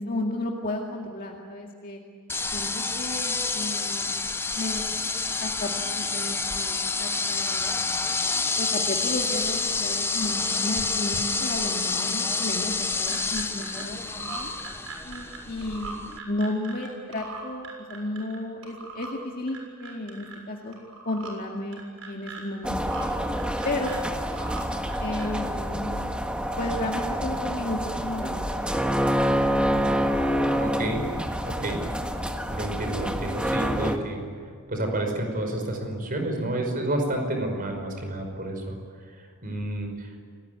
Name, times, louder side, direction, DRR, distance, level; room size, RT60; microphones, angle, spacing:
voice 1, 0.0-2.0 2.5-4.3 4.5-4.9 5.4-7.9 8.6-14.5 15.0-20.8 21.1-21.8 22.1-22.8 23.6-24.0 25.0-25.9 26.6-28.6, left 1 dB, 40° left, 0 dB, 2.2 m, -33 dB
sound 1, 2.3-16.2, left 4 dB, 10° left, 0.7 m, -28 dB
sound 2, 13.1-13.8 14.1-16.9 17.1-18.4 18.6-19.1 19.5-20.4 20.7-21.3 21.7-22.4 22.8-23.1 23.3-24.6 24.9-25.5, right 4 dB, 65° right, 6.8 m, -40 dB
sound 3, 22.6-34.0, equal, 5° right, 1.5 m, -27 dB
voice 2, 30.6-31.0 31.4-31.8 32.5-34.2 34.7-38.8 39.2-40.1, right 1 dB, 40° right, 4 dB, 5.6 m, -30 dB
29.5 x 19.5 x 9.6 m, 2.1 s
head